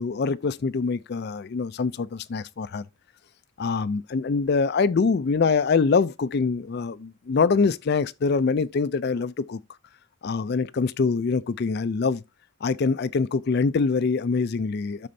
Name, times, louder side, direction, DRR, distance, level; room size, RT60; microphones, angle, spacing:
voice 1, 0.0-2.8 3.6-9.6 10.2-12.2 12.6-15.1, left 4 dB, 50° left, 0.4 m, -24 dB
12.5 x 4.3 x 2.7 m
head